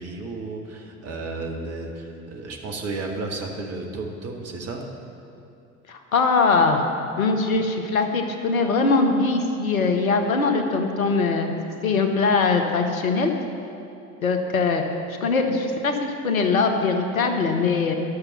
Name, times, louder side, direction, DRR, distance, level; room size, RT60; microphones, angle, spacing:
voice 1, 0.0-4.8, right 3 dB, 35° right, 1 dB, 1.6 m, -33 dB
voice 2, 5.9-6.8 7.2-11.5 11.8-13.3 14.2-14.8 15.2-17.9, left 4 dB, 75° left, 5 dB, 1.0 m, -21 dB
11.5 x 6.8 x 7.0 m, 2.7 s
figure-of-eight pair, 65°, 42 cm